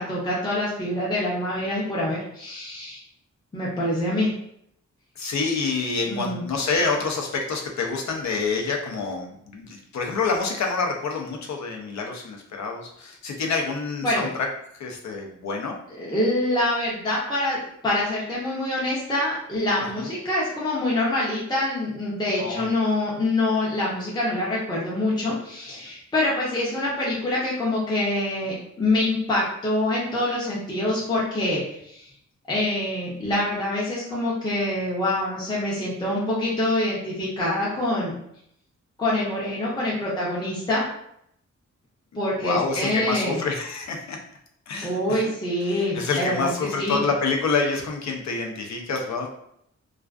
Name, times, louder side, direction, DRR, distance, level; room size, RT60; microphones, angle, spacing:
voice 1, 0.0-3.0 3.5-4.3 6.1-6.4 14.0-14.3 15.9-32.1 32.5-38.1 39.0-40.9 42.1-43.4 44.8-47.0, left 1 dB, 15° left, -6 dB, 0.6 m, -25 dB
voice 2, 5.2-14.3 14.8-15.8 20.0-20.1 22.4-22.7 42.4-44.2 44.7-45.2 45.6-49.3, left 4 dB, 70° left, 1 dB, 0.5 m, -27 dB
2.3 x 2.3 x 2.3 m, 0.72 s
wide cardioid pair, 130°, 29 cm